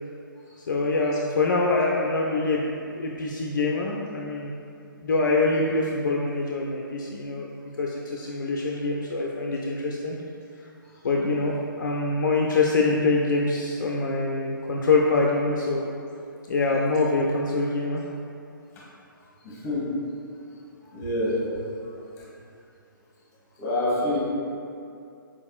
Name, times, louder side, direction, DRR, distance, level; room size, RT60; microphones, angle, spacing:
voice 1, 0.7-2.6 2.9-4.6 5.0-7.5 7.8-10.2 10.6-10.7 11.0-15.8 16.5-18.0, left 3 dB, 60° left, -2 dB, 0.4 m, -24 dB
voice 2, 20.9-21.4 23.6-24.2, left 1 dB, 20° left, -7 dB, 1.2 m, -25 dB
4.5 x 3.4 x 2.4 m, 2.5 s
figure-of-eight pair, 135°, 12 cm